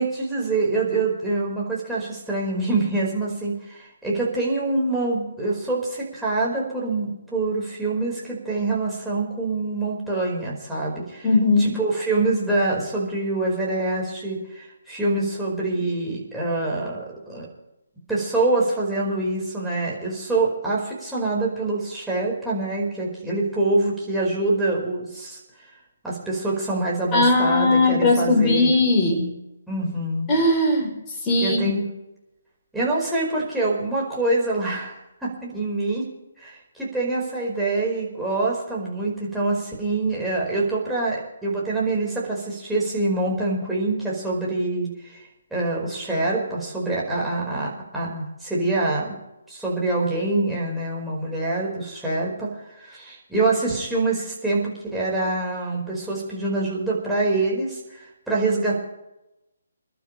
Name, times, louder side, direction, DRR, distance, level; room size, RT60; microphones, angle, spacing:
voice 1, 0.0-11.3 11.6-17.5 18.1-25.4 26.0-28.7 29.7-30.3 31.4-31.8 32.7-36.0 36.4-45.2 45.5-49.2 49.5-58.8, right 2 dB, 5° right, -6 dB, 4.9 m, -25 dB
voice 2, 11.2-11.8 27.1-29.3 30.3-31.0 31.2-31.6, left 2 dB, 20° left, 1 dB, 4.0 m, -19 dB
28.5 x 12.0 x 3.4 m, 0.91 s
figure-of-eight pair, 140°, 0 cm